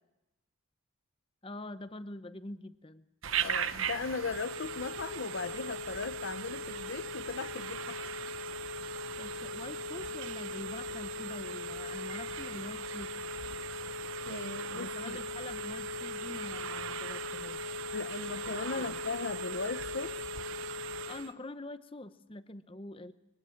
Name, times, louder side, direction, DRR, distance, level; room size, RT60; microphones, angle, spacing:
voice 1, 1.4-3.1 9.2-13.3 14.7-17.8 18.5-19.0 21.1-23.1, left 2 dB, 25° left, 0.9 m, -45 dB
Telephone, 3.2-21.3, right 2 dB, 80° right, 1.0 m, -38 dB
voice 2, 3.4-8.1 9.2-9.4 13.7-13.8 14.2-15.2 17.9-20.3, left 4 dB, 70° left, 0.7 m, -38 dB
23.0 x 18.5 x 8.5 m
head